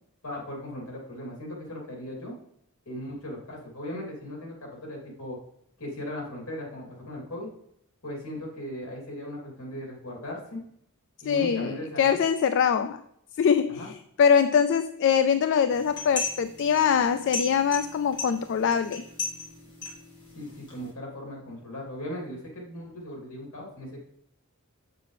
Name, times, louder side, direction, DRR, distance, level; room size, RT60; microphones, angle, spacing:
voice 1, 0.2-2.3 2.9-5.4 5.8-7.5 8.0-10.6 11.2-12.2 13.7-13.9 20.3-24.0, left 1 dB, 80° left, -1 dB, 2.8 m, -38 dB
voice 2, 11.3-13.0 13.4-19.0, left 7 dB, 55° left, 11 dB, 0.3 m, -23 dB
sound 1, 15.7-20.9, left 3 dB, 20° left, 2.0 m, -37 dB
7.3 x 6.8 x 3.3 m, 0.72 s
head